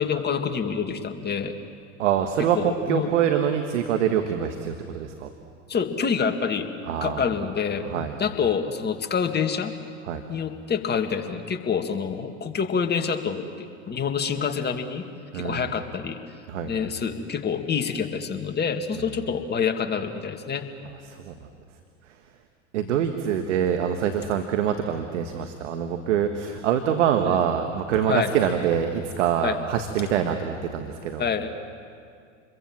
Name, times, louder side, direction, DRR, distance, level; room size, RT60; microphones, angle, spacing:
voice 1, 0.0-1.5 2.4-3.1 5.7-6.7 7.0-9.7 10.3-15.1 15.3-16.2 16.6-20.6 27.3-27.4 28.1-28.4 29.4-29.6 31.2-31.5, left 6 dB, 25° left, 5 dB, 2.1 m, -27 dB
voice 2, 2.0-5.3 6.9-7.2 7.8-8.1 10.1-10.2 15.3-15.7 16.5-16.7 19.0-19.1 21.1-21.3 22.7-31.2, right 9 dB, 75° right, 6 dB, 1.5 m, -25 dB
28.5 x 22.5 x 7.5 m, 2.3 s
hypercardioid pair, 85°, 37 cm